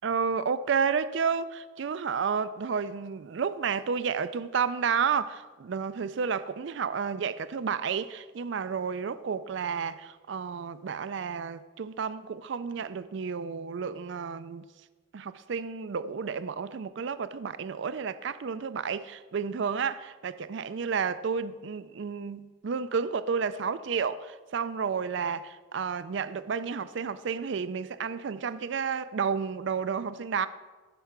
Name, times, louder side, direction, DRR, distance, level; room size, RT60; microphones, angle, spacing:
voice 1, 0.0-14.6 15.1-30.5, right 6 dB, 60° right, 0.4 m, -31 dB
15.0 x 5.5 x 5.9 m
head